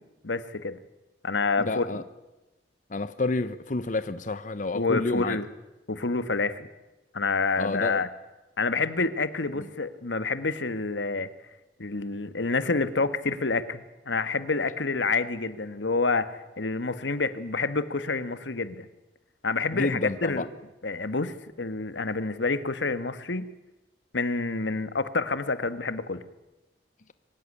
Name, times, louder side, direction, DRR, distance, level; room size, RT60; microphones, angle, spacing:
voice 1, 0.2-0.8 1.2-1.9 4.7-5.5 5.9-6.7 7.1-8.1 8.6-11.3 11.8-16.3 16.6-18.9 19.4-20.5 20.8-23.5 24.1-26.2, left 3 dB, 90° left, 1.4 m, -28 dB
voice 2, 1.6-2.0 2.9-5.4 7.6-8.0 9.6-9.7 19.7-20.5, left 2 dB, 45° left, 0.7 m, -29 dB
24.0 x 15.5 x 9.9 m
head